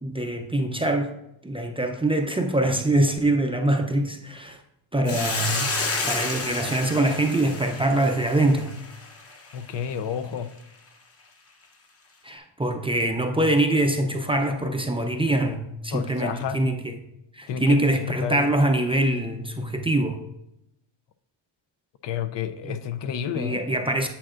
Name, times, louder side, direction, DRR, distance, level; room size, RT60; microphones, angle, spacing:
voice 1, 0.0-1.1 1.4-4.6 4.9-5.7 6.1-8.8 12.2-16.9 17.3-20.2 22.7-22.8 23.3-24.1, right 1 dB, 10° right, 3 dB, 0.5 m, -24 dB
Hiss, 5.1-9.6, left 3 dB, 30° left, 0.9 m, -30 dB
voice 2, 9.5-10.5 15.9-16.6 17.5-18.0 18.2-18.5 22.0-23.8, left 8 dB, 60° left, 11 dB, 0.6 m, -30 dB
8.6 x 7.7 x 2.5 m, 0.84 s
cardioid pair, 120°, 48 cm